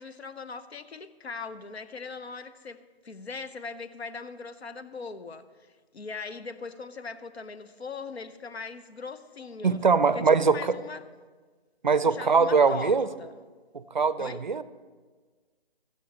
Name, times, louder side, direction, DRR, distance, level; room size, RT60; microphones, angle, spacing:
voice 1, 0.0-5.5 5.9-9.8 10.1-11.1 12.0-13.4 14.2-14.4, left 4 dB, 80° left, 0.9 m, -40 dB
voice 2, 9.6-10.8 11.8-13.1 13.7-14.6, right 5 dB, 50° right, 0.5 m, -22 dB
15.5 x 14.0 x 3.0 m
figure-of-eight pair, 165°, 31 cm